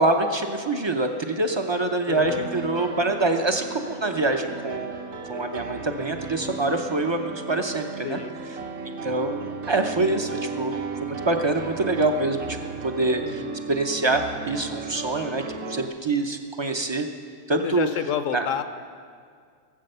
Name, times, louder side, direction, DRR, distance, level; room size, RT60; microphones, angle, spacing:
voice 1, 0.0-5.0 5.3-8.2 9.0-10.7 11.0-12.6 12.8-15.4 15.7-17.1 17.5-17.9 18.3-18.5, right 2 dB, 35° right, 5 dB, 0.4 m, -25 dB
voice 2, 2.1-2.5 8.0-8.3 13.2-13.6 17.6-18.6, left 8 dB, 70° left, 10 dB, 1.0 m, -29 dB
Piano, 2.1-15.9, right 4 dB, 80° right, 1.4 m, -35 dB
17.5 x 7.8 x 6.7 m, 2.1 s
omnidirectional pair, 1.4 m